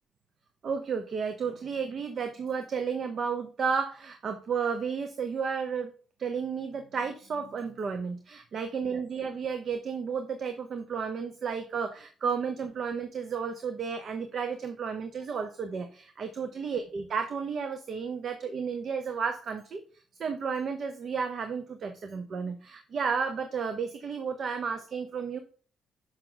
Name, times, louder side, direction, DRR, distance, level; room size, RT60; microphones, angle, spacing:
voice 1, 0.6-5.9 6.2-19.8 20.2-25.4, right 6 dB, 55° right, 8 dB, 0.8 m, -32 dB
6.4 x 5.8 x 4.0 m, 0.41 s
cardioid pair, 90°, 0 cm